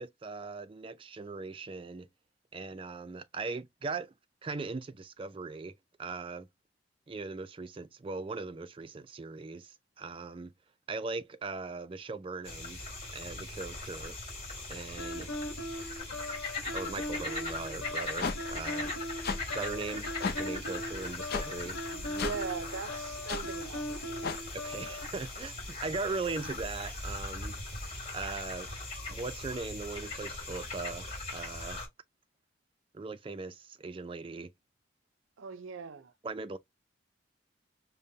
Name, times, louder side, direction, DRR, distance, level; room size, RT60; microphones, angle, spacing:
voice 1, 0.0-2.1 2.5-4.1 4.4-5.7 6.0-6.5 7.1-10.5 10.9-12.8 13.1-14.1 14.7-15.3 16.7-18.9 19.5-20.1 20.4-21.8 24.5-25.5 25.8-27.6 28.1-28.7 29.1-31.8 32.9-34.5 36.2-36.6, right 3 dB, 25° right, 0.3 m, -39 dB
sound 1, 12.4-31.9, left 2 dB, 30° left, 1.9 m, -40 dB
sound 2, 15.0-25.1, equal, 80° left, 1.0 m, -40 dB
sound 3, 18.2-18.4 19.2-19.4 20.2-20.4 21.3-21.5 22.2-22.4 23.3-23.4 24.2-24.4, left 4 dB, 50° left, 0.5 m, -32 dB
voice 2, 21.9-24.2 35.4-36.1, right 5 dB, 85° right, 0.5 m, -40 dB
5.2 x 2.1 x 2.7 m
head